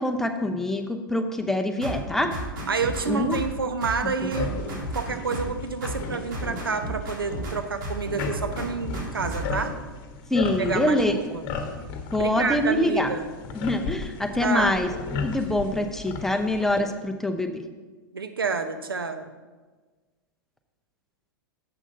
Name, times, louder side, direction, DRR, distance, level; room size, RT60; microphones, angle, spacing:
voice 1, 0.0-2.3 3.1-3.4 4.2-4.3 10.3-11.1 12.1-13.1 13.5-14.9 15.2-17.6, left 1 dB, 5° left, 5 dB, 0.7 m, -25 dB
sound 1, 1.8-3.6 3.8-5.6 5.8-7.6 7.8-9.7, right 1 dB, 60° right, 2.2 m, -33 dB
voice 2, 2.7-9.7 10.6-11.4 12.2-13.3 14.4-14.8 18.1-19.3, right 4 dB, 85° right, 8 dB, 0.8 m, -29 dB
sound 2, 4.3-16.8, left 5 dB, 40° left, 1.1 m, -36 dB
7.8 x 6.2 x 5.2 m, 1.3 s
figure-of-eight pair, 100°, 12 cm